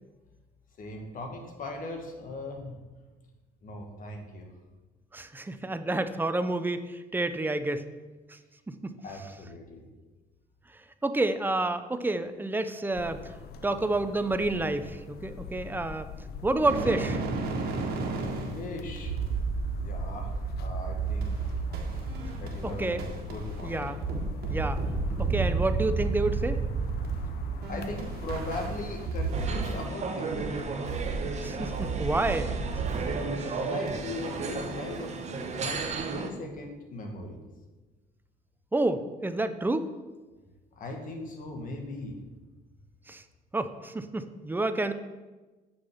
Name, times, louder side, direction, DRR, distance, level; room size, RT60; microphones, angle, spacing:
voice 1, 0.8-2.8 3.6-4.5 9.0-9.9 18.2-19.1 19.8-21.4 22.4-22.9 23.3-23.8 27.7-30.8 33.4-35.1 35.5-35.8 36.1-37.4 40.7-42.2, left 2 dB, 55° left, 3 dB, 1.9 m, -39 dB
voice 2, 5.1-7.8 8.3-8.4 8.7-8.9 11.0-13.3 13.6-16.1 16.4-17.2 22.8-23.0 23.6-24.0 24.5-24.8 25.2-26.6 31.4-32.5 33.4-33.5 38.7-39.9 43.1-43.2 43.5-44.9, right 2 dB, 10° right, 10 dB, 0.6 m, -29 dB
sound 1, 12.9-29.1, left 6 dB, 70° left, 0.8 m, -42 dB
sound 2, 16.6-29.9 30.2-33.2 33.9-36.1, right 4 dB, 65° right, 1.6 m, -32 dB
sound 3, 29.3-36.3, right 4 dB, 40° right, 1.0 m, -34 dB
6.7 x 5.7 x 7.0 m, 1.2 s
cardioid pair, 110°, 17 cm